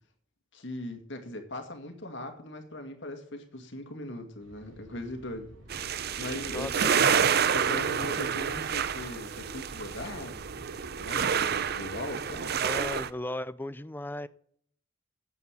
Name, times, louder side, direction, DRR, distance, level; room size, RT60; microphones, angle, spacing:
voice 1, 0.5-5.5 5.9-10.4 11.0-12.6, left 1 dB, 65° left, 2.2 m, -40 dB
sound 1, 4.4-12.1, equal, 85° right, 5.3 m, -51 dB
sound 2, 5.7-13.1, right 7 dB, 50° right, 0.6 m, -28 dB
voice 2, 6.5-7.0 12.6-14.3, left 1 dB, 10° left, 0.4 m, -36 dB
9.5 x 8.4 x 7.3 m
head